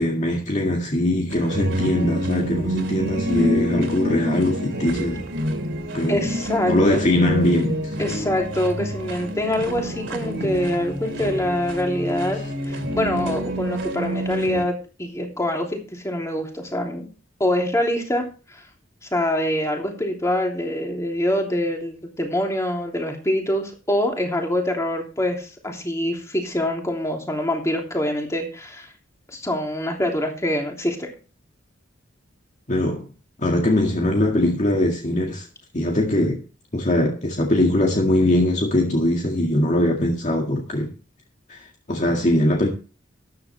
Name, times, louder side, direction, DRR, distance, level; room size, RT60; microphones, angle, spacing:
voice 1, 0.0-5.3 5.9-6.3 6.7-8.0 32.7-33.1 33.4-35.5 35.7-36.4 36.7-40.9 41.5-42.7, left 1 dB, 40° left, 1.9 m, -21 dB
sound 1, 1.3-14.7, equal, 70° right, 2.6 m, -27 dB
voice 2, 6.1-7.0 8.0-12.4 12.6-14.7 15.0-17.1 17.4-18.2 18.5-18.6 19.1-28.9 29.3-31.1, left 1 dB, 15° left, 3.1 m, -25 dB
13.5 x 10.5 x 3.3 m
head